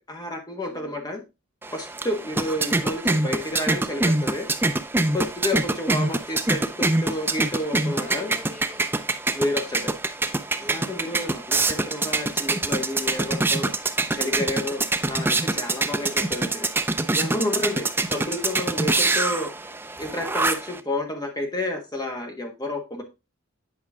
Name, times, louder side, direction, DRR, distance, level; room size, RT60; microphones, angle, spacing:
voice 1, 0.1-1.2 1.7-4.5 5.1-8.3 9.3-9.9 10.6-13.7 14.1-16.7 17.1-19.5 20.0-23.0, left 1 dB, 20° left, 4 dB, 1.4 m, -30 dB
voice 2, 0.6-1.1 2.2-2.8 8.0-10.3, left 3 dB, 60° left, -7 dB, 4.0 m, -51 dB
sound 1, 1.6-20.8, right 2 dB, 10° right, 0.5 m, -25 dB
8.4 x 5.3 x 3.6 m, 0.27 s
head